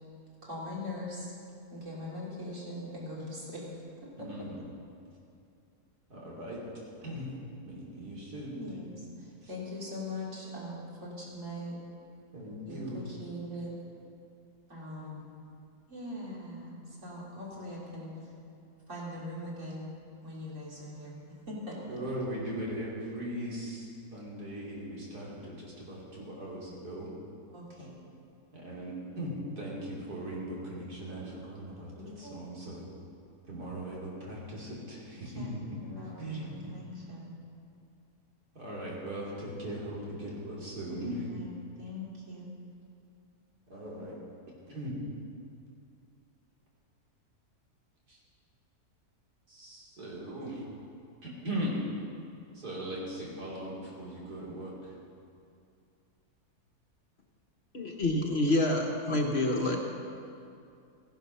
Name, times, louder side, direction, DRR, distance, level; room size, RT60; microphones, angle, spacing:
voice 1, 0.4-1.3 1.7-3.7 4.2-4.5 8.6-11.8 12.7-13.8 14.7-15.3 15.9-18.1 18.9-19.9 20.2-22.0 27.5-27.9 32.0-32.4 32.7-32.8 35.3-35.5 35.9-37.3 40.9-42.5, left 1 dB, 50° right, -5 dB, 3.4 m, -41 dB
voice 2, 4.2-4.6 6.1-6.6 7.0-7.3 7.6-8.7 9.4-9.5 12.3-13.0 21.9-27.1 28.5-31.9 32.2-32.8 33.5-35.3 36.2-36.7 38.6-41.3 43.7-44.2 44.7-44.9 48.1-48.2 49.5-50.6 51.2-51.7 52.5-54.9, right 1 dB, 85° right, -5 dB, 3.6 m, -39 dB
voice 3, 57.7-59.8, left 1 dB, 45° left, 1 dB, 1.3 m, -27 dB
15.5 x 11.0 x 5.6 m, 2.5 s
omnidirectional pair, 1.7 m